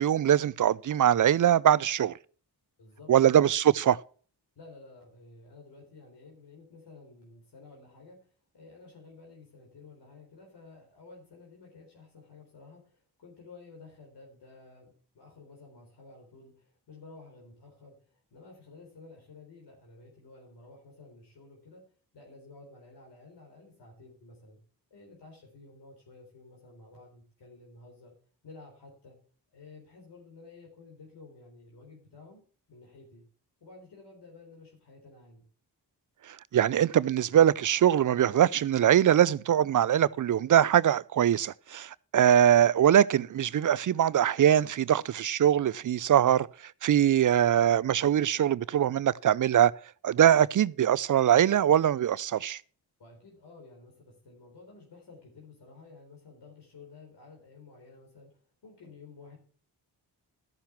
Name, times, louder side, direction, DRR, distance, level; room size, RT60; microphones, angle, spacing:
voice 1, 0.0-2.1 3.1-4.0 36.3-49.7 50.0-52.6, right 10 dB, 50° right, 0.5 m, -22 dB
voice 2, 2.8-3.3 4.6-8.2 8.5-21.8 22.1-24.6 24.9-28.1 28.4-29.2 29.5-32.4 32.7-33.2 33.6-35.4 53.0-58.3 58.6-59.4, left 3 dB, 75° left, 3.9 m, -52 dB
13.5 x 5.7 x 5.9 m
cardioid pair, 65°, 41 cm